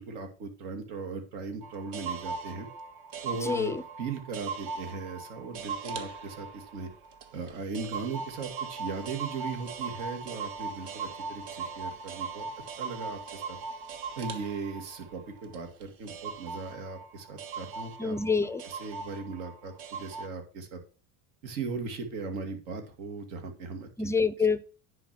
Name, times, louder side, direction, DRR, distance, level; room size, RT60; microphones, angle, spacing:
voice 1, 0.0-2.7 3.2-6.9 7.3-12.5 12.8-13.6 14.2-18.2 18.6-20.8 21.4-24.1, right 4 dB, 80° right, 2.4 m, -38 dB
sound 1, 1.6-20.3, right 5 dB, 60° right, 1.5 m, -39 dB
voice 2, 3.4-3.8 18.0-18.6 24.0-24.6, left 5 dB, 10° left, 0.3 m, -26 dB
10.0 x 4.8 x 5.9 m
cardioid pair, 125°, 40 cm